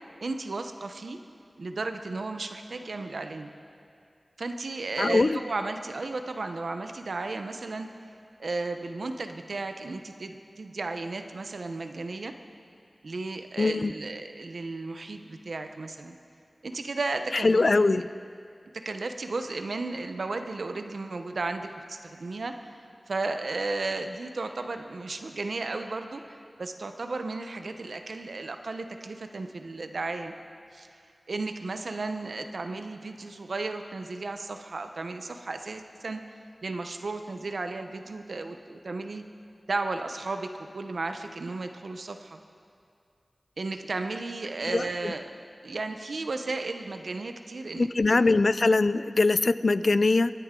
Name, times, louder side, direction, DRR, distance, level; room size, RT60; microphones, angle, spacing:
voice 1, 0.2-1.2 1.6-3.5 4.4-7.9 8.4-12.3 13.0-16.2 16.6-17.6 17.9-18.0 18.7-30.3 30.7-30.9 31.3-36.2 36.6-39.2 39.7-42.4 43.6-45.2 45.6-48.2, right 3 dB, 85° right, 7 dB, 0.8 m, -34 dB
voice 2, 5.0-5.4 13.6-13.9 17.3-18.1 44.7-45.1 47.8-50.3, left 3 dB, 65° left, 15 dB, 0.3 m, -22 dB
23.5 x 9.9 x 3.8 m, 2.4 s
wide cardioid pair, 65°, 0 cm